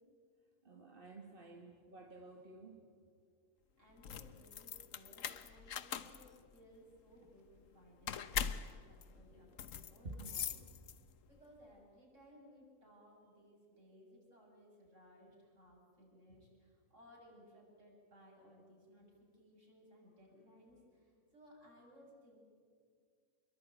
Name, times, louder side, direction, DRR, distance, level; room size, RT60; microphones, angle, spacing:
voice 1, 0.6-2.8 5.8-5.9 10.0-10.4, right 2 dB, 40° right, 2 dB, 2.1 m, -51 dB
voice 2, 3.8-10.5 11.2-22.4, equal, 55° right, -1 dB, 8.0 m, -62 dB
sound 1, 3.9-11.3, left 8 dB, 65° left, 1.3 m, -43 dB
27.0 x 22.5 x 9.4 m, 2.1 s
omnidirectional pair, 1.5 m